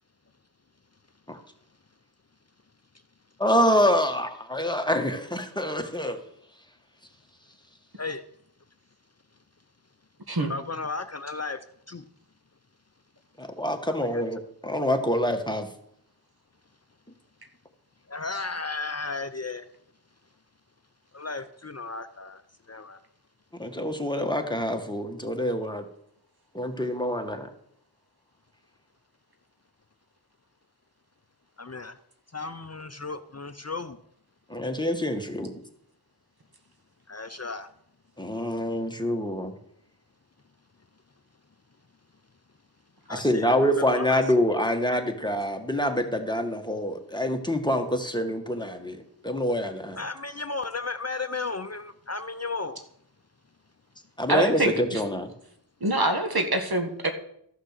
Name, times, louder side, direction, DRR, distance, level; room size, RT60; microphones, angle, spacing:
voice 1, 3.4-6.2 13.4-15.7 23.5-25.9 26.5-27.5 34.5-35.6 38.2-39.5 43.1-50.0 54.2-55.3, equal, 10° left, 5 dB, 1.5 m, -26 dB
voice 2, 10.5-12.0 14.1-14.2 18.1-19.7 21.1-22.4 22.7-23.0 31.6-32.0 32.3-34.0 37.1-37.7 43.1-43.5 44.0-44.2 50.0-52.8, left 3 dB, 35° left, 10 dB, 0.6 m, -34 dB
voice 3, 54.3-55.0 55.8-57.1, right 1 dB, 60° right, 5 dB, 1.9 m, -25 dB
13.5 x 6.2 x 6.7 m, 0.70 s
wide cardioid pair, 40°, 42 cm